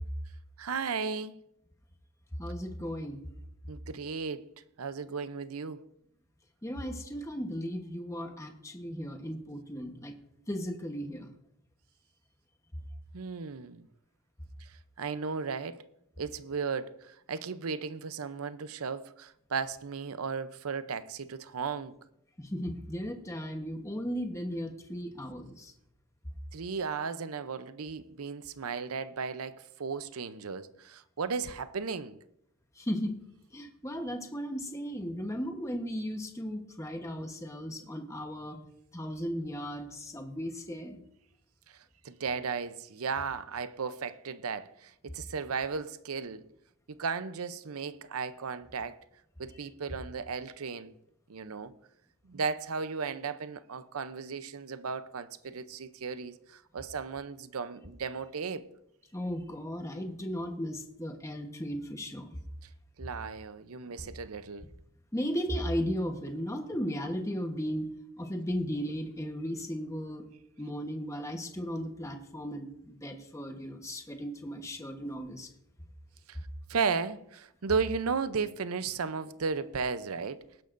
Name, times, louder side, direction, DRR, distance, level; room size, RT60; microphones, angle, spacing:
voice 1, 0.6-1.3 3.7-4.5 4.8-5.8 13.1-13.9 14.6-15.8 16.2-21.9 26.5-32.2 41.7-41.8 42.0-46.4 46.9-49.0 49.4-50.9 51.3-51.7 52.2-58.7 63.0-64.7 76.3-76.4 76.7-80.4, right 5 dB, 85° right, 0.6 m, -35 dB
voice 2, 2.4-3.2 6.6-10.1 10.5-11.3 22.4-25.7 32.8-33.1 33.5-38.6 38.9-41.0 59.1-62.4 64.0-64.1 65.1-70.2 70.6-75.5, equal, 15° left, 1.0 m, -36 dB
19.0 x 10.5 x 2.6 m
head